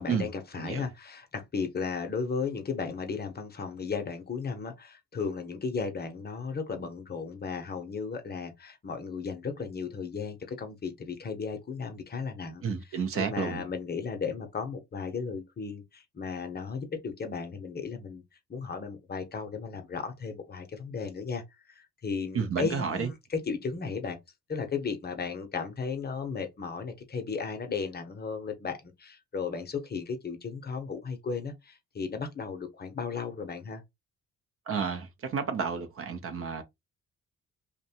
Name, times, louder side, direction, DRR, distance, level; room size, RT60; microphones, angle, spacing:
voice 1, 0.0-12.6 13.1-18.2 18.5-21.4 21.7-23.1 23.5-24.2 24.5-33.8, left 5 dB, 35° left, 0.7 m, -35 dB
voice 2, 0.6-0.9 12.6-13.6 22.3-23.1 34.7-36.6, right 6 dB, 50° right, 0.6 m, -31 dB
2.6 x 2.2 x 2.7 m
cardioid pair, 90°, 30 cm